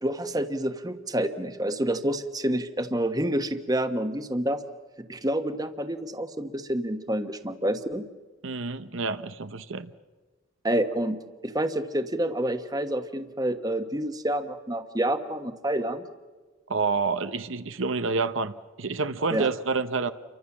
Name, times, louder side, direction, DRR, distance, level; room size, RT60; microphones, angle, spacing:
voice 1, 0.0-4.6 5.1-8.0 10.6-16.0 19.3-19.5, right 1 dB, 20° right, 1.2 m, -28 dB
voice 2, 8.4-9.9 16.7-18.5 18.8-20.1, right 4 dB, 75° right, 0.9 m, -28 dB
29.5 x 24.5 x 7.3 m
head